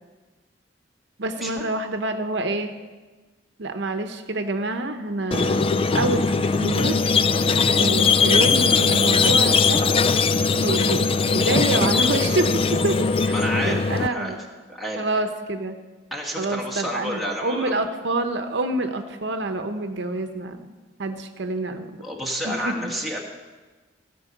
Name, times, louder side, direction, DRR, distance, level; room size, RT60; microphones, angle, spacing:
voice 1, 1.2-2.7 3.6-7.0 7.8-9.8 10.5-14.4 15.0-15.8 16.4-22.0 22.4-22.9, right 2 dB, 70° right, 6 dB, 0.8 m, -27 dB
Squeak, 5.3-14.1, left 4 dB, 30° left, 0.4 m, -20 dB
voice 2, 13.3-14.3 14.7-15.0 16.1-17.8 22.0-23.2, equal, ahead, -2 dB, 1.8 m, -30 dB
16.0 x 5.5 x 7.9 m, 1.3 s
head